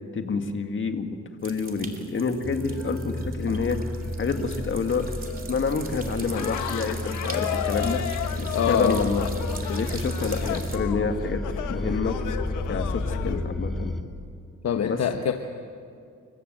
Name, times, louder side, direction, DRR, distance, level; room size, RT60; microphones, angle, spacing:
voice 1, 0.1-3.8 4.2-5.1 5.5-8.0 8.4-9.3 9.7-11.4 11.7-12.1 12.7-13.9 14.8-15.0, left 5 dB, 40° left, 6 dB, 2.0 m, -28 dB
sound 1, 1.4-10.8, right 3 dB, 30° right, 2.9 m, -41 dB
sound 2, 2.4-14.0, left 2 dB, ahead, 2.1 m, -32 dB
sound 3, 6.3-13.4, left 10 dB, 85° left, 1.3 m, -33 dB
voice 2, 8.5-9.0 14.6-15.3, left 8 dB, 55° left, 5 dB, 1.2 m, -24 dB
28.5 x 15.5 x 7.9 m, 2.4 s
cardioid pair, 90°, 30 cm